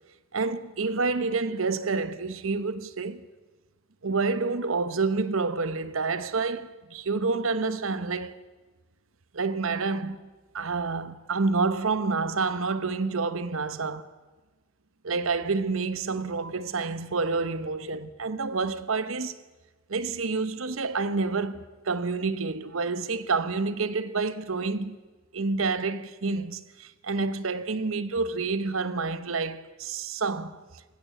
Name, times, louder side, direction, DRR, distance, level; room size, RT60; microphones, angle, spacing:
voice 1, 0.3-3.3 4.0-8.4 9.3-14.1 15.0-19.3 19.9-25.0 25.3-30.6, right 4 dB, 75° right, 1.0 m, -28 dB
19.0 x 15.5 x 9.1 m
head